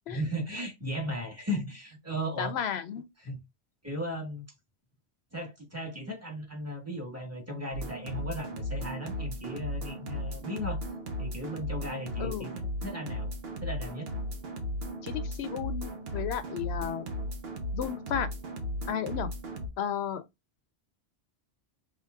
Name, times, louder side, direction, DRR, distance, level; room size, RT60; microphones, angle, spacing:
voice 1, 0.1-2.5 3.2-3.4 3.8-4.4 5.3-10.8 11.2-13.3 13.6-14.1, equal, 15° right, 1.4 m, -36 dB
voice 2, 2.4-3.0 12.2-12.5 15.0-17.0 17.7-18.3 18.9-19.3 19.8-20.2, left 8 dB, 80° left, 0.9 m, -33 dB
sound 1, 7.7-19.7, equal, 65° right, 1.1 m, -36 dB
5.7 x 3.1 x 2.3 m
omnidirectional pair, 1.1 m